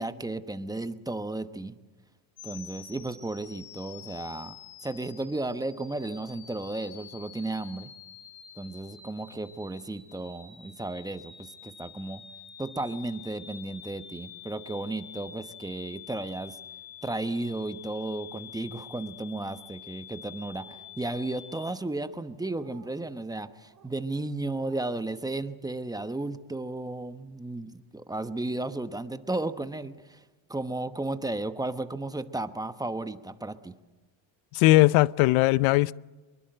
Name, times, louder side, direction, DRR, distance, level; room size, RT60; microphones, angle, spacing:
voice 1, 0.0-1.7 2.4-7.9 8.6-12.2 12.6-16.6 17.0-30.2 30.5-33.7, right 2 dB, 10° right, 1.0 m, -34 dB
sound 1, 2.4-21.7, left 9 dB, 50° left, 5.6 m, -48 dB
sound 2, 20.4-20.9 21.4-21.9 22.4-23.0 23.6-23.9 24.4-25.0, right 8 dB, 40° right, 5.2 m, -56 dB
voice 2, 34.5-35.9, left 18 dB, 80° left, 0.7 m, -19 dB
25.5 x 22.5 x 7.7 m
cardioid pair, 135°, 48 cm